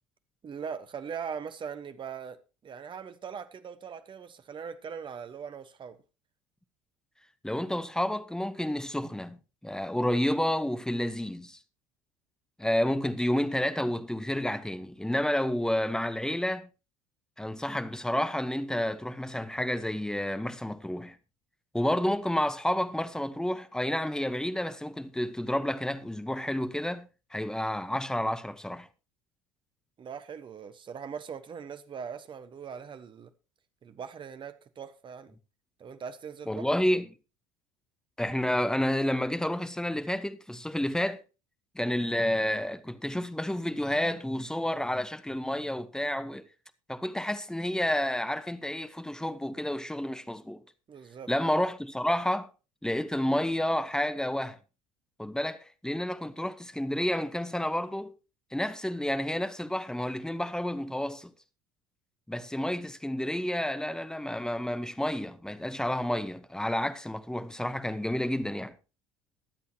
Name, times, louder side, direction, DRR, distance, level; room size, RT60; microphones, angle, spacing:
voice 1, 0.4-6.0 30.0-33.3 33.8-35.3 35.8-36.6 50.9-51.3, right 7 dB, 30° right, 1.3 m, -41 dB
voice 2, 7.4-9.4 9.6-11.6 12.6-16.7 17.4-21.2 21.7-28.9 36.5-37.1 38.2-41.2 41.7-46.4 46.9-50.6 51.3-52.5 52.8-54.6 55.2-58.1 58.5-61.3 62.3-68.8, left 1 dB, 5° left, 1.2 m, -30 dB
22.5 x 8.4 x 3.0 m
figure-of-eight pair, 65°, 17 cm